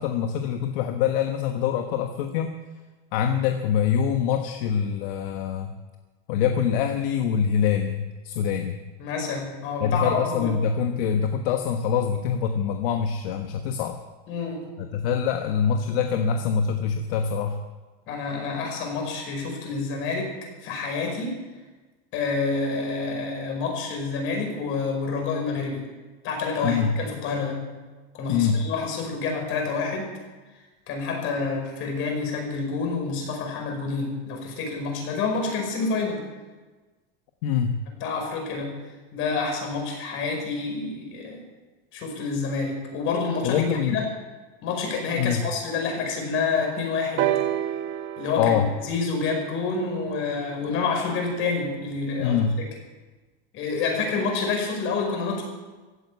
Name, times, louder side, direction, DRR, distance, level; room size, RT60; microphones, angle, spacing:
voice 1, 0.0-2.6 3.1-5.7 6.3-8.8 9.8-14.0 14.8-17.6 26.6-26.9 28.3-28.6 37.4-37.8 43.4-44.0 45.2-45.4 48.4-48.7 52.2-52.5, left 7 dB, 65° left, 5 dB, 1.3 m, -24 dB
voice 2, 9.0-10.5 14.3-14.7 18.1-20.3 20.6-21.4 22.1-25.9 26.2-27.7 28.1-30.1 30.9-36.2 38.0-38.8 39.1-41.4 41.9-44.1 44.6-47.4 48.2-48.5 48.8-52.4 53.5-55.4, left 4 dB, 45° left, 2 dB, 5.3 m, -28 dB
sound 1, 47.2-51.0 51.9-52.0, right 12 dB, 40° right, 1.0 m, -30 dB
15.5 x 9.2 x 8.4 m, 1.3 s
supercardioid pair, 150°, 30 cm